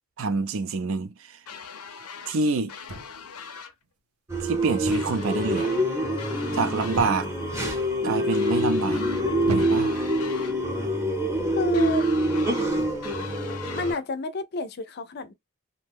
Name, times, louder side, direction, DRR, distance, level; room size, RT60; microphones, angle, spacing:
voice 1, 0.2-1.4 2.3-2.7 4.4-5.7 6.5-7.3 8.0-9.0 9.5-9.9, right 3 dB, 60° right, 0.4 m, -27 dB
sound 1, 1.5-2.4 2.7-3.7 4.9-5.8 6.2-7.1 8.3-9.2 9.6-10.6 11.7-12.7 13.0-14.0, left 6 dB, 90° left, 0.6 m, -41 dB
sound 2, 2.9-3.4 4.8-5.2 5.5-5.9 6.9-7.5 8.2-8.6 9.4-10.1 11.0-11.3, equal, 85° right, 0.9 m, -36 dB
sound 3, 4.3-13.9, right 1 dB, 15° right, 0.7 m, -26 dB
voice 2, 11.5-12.1 13.7-15.3, left 3 dB, 45° left, 0.4 m, -29 dB
2.6 x 2.2 x 3.4 m
head